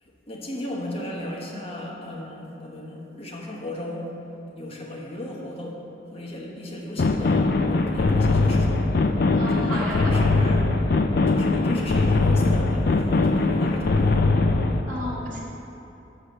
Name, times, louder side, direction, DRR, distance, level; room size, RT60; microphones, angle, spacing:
voice 1, 0.0-4.1 4.5-5.8 6.1-8.9 9.5-10.7 11.3-14.2, left 1 dB, 30° left, -2 dB, 1.0 m, -35 dB
sound 1, 7.0-14.8, left 3 dB, 50° left, 0.4 m, -21 dB
voice 2, 9.3-10.3 14.9-15.4, equal, 45° right, -8 dB, 1.6 m, -32 dB
7.2 x 4.7 x 6.6 m, 2.8 s
head